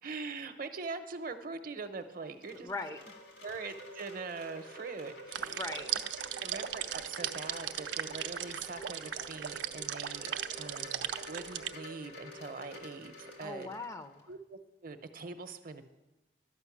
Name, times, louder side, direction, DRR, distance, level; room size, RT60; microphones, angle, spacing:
voice 1, 0.0-2.7 3.4-5.7 6.4-13.7 14.3-15.9, right 4 dB, 50° right, 9 dB, 0.7 m, -43 dB
Wind chime, 2.0-14.2, equal, 80° left, 2.1 m, -49 dB
voice 2, 2.5-3.1 5.4-6.0 13.4-14.3, left 3 dB, 20° left, 8 dB, 0.4 m, -41 dB
sound 1, 5.3-11.7, right 10 dB, 80° right, 0.4 m, -38 dB
12.0 x 5.3 x 8.4 m, 1.0 s
head